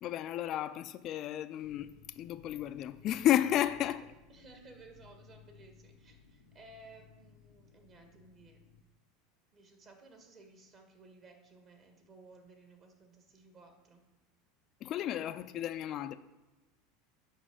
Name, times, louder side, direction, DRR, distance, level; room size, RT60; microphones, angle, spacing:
voice 1, 0.0-1.9 2.2-4.1 14.8-16.2, left 12 dB, 50° left, 0.3 m, -32 dB
sound 1, 1.6-8.8, left 6 dB, 90° left, 0.6 m, -60 dB
voice 2, 4.3-8.6 9.5-14.0, right 3 dB, 40° right, 1.5 m, -57 dB
7.3 x 5.1 x 4.9 m
hypercardioid pair, 95°, 0 cm